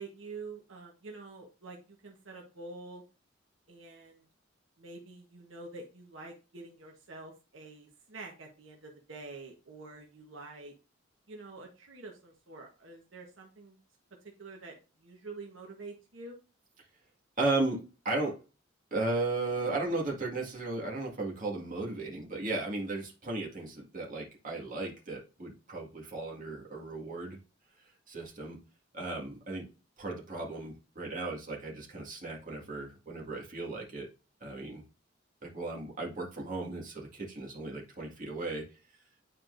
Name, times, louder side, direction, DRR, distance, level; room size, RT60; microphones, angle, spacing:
voice 1, 0.0-3.0 3.7-4.3 4.8-10.7 11.3-13.8 14.4-14.7 15.0-16.4, right 3 dB, 80° right, 1 dB, 1.3 m, -47 dB
voice 2, 17.4-18.4 18.9-27.4 28.1-28.6 28.9-29.7 30.0-34.1 34.4-34.8 35.4-38.7, right 2 dB, 45° right, -2 dB, 2.0 m, -35 dB
9.6 x 4.4 x 2.6 m, 0.32 s
head